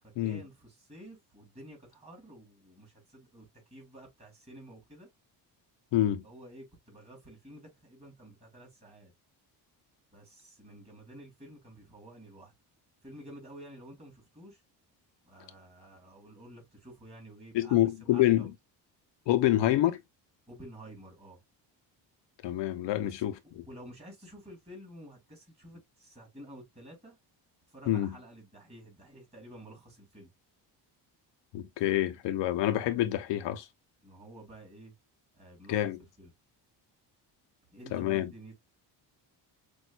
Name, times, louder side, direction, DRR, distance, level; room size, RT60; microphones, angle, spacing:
voice 1, 0.0-5.1 6.2-9.1 10.1-12.5 13.0-14.6 15.2-18.5 20.5-21.4 22.9-23.3 23.7-27.2 27.7-30.3 34.0-34.9 35.4-35.8 36.2-36.3 37.7-38.5, right 1 dB, 15° right, 3.4 m, -51 dB
voice 2, 5.9-6.2 17.5-18.5 19.3-20.0 22.4-23.3 27.9-28.1 31.5-33.7 35.7-36.0 37.9-38.3, left 13 dB, 80° left, 0.8 m, -27 dB
6.1 x 2.5 x 2.4 m
cardioid pair, 145°, 43 cm